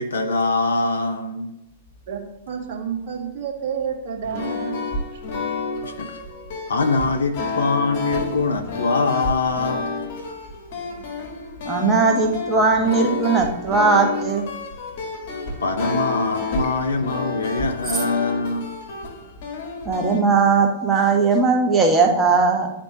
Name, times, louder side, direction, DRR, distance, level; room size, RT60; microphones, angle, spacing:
voice 1, 0.0-1.5 5.8-6.2 6.7-9.8 15.6-18.7, left 3 dB, 75° left, 6 dB, 0.6 m, -23 dB
voice 2, 2.5-4.8 5.1-5.4, right 7 dB, 50° right, 0 dB, 1.6 m, -30 dB
sound 1, 4.2-20.2, left 4 dB, 50° left, 1.8 m, -30 dB
voice 3, 11.6-14.4 19.8-22.7, right 4 dB, 15° right, 1 dB, 1.1 m, -18 dB
11.5 x 4.4 x 2.9 m, 0.88 s
figure-of-eight pair, 105°, 0 cm